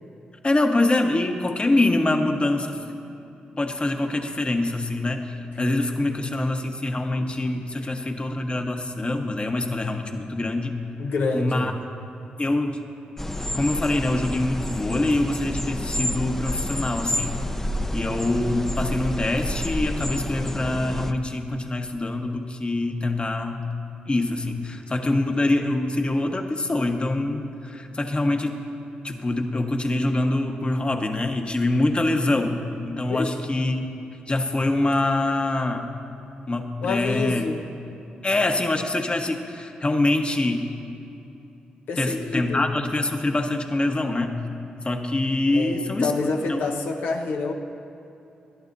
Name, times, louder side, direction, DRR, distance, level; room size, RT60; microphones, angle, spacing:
voice 1, 0.4-2.8 3.6-10.7 11.3-11.7 12.4-12.8 13.5-17.3 17.9-23.6 24.1-28.6 29.0-32.6 32.8-33.9 34.3-35.9 36.5-37.4 38.2-40.6 42.0-44.4 44.8-46.1 46.5-46.6, left 2 dB, 30° left, 5 dB, 1.2 m, -24 dB
voice 2, 11.0-11.7 33.1-33.5 36.8-37.6 41.9-42.6 45.5-47.5, left 3 dB, 75° left, 1 dB, 1.1 m, -27 dB
sound 1, 13.2-21.1, left 1 dB, 15° left, 0.8 m, -29 dB
20.5 x 11.5 x 2.7 m, 2.8 s
supercardioid pair, 45°, 3 cm